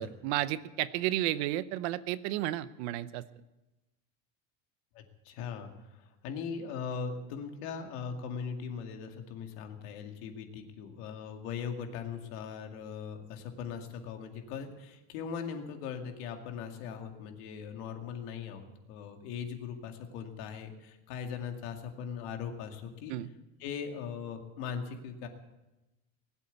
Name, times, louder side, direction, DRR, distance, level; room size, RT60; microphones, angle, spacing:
voice 1, 0.0-3.2 23.1-23.3, right 14 dB, 75° right, 16 dB, 0.8 m, -32 dB
voice 2, 4.9-23.1 23.6-25.3, left 6 dB, 65° left, 4 dB, 2.3 m, -40 dB
20.0 x 8.3 x 8.2 m, 1.0 s
cardioid pair, 160°, 33 cm